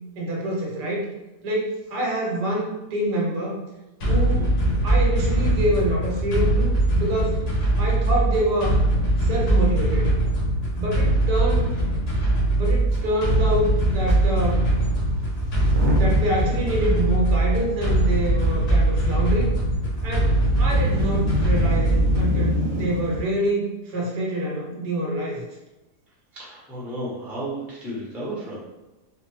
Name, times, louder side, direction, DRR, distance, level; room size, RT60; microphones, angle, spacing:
voice 1, 0.2-1.0 1.4-3.6 4.0-4.5 4.8-7.4 7.8-8.8 9.2-10.1 10.8-11.7 12.6-14.6 15.9-19.6 20.0-25.4, right 1 dB, 90° right, -3 dB, 1.6 m, -26 dB
sound 1, 4.0-22.4, right 1 dB, 70° left, 1.7 m, -21 dB
Motor vehicle (road) / Engine starting / Accelerating revving vroom, 12.9-13.0 13.2-13.5 14.1-14.2 15.5-23.2, left 1 dB, 65° right, 1.0 m, -28 dB
voice 2, 26.3-28.6, right 1 dB, ahead, -5 dB, 0.5 m, -33 dB
4.8 x 2.0 x 3.1 m, 1.0 s
omnidirectional pair, 1.8 m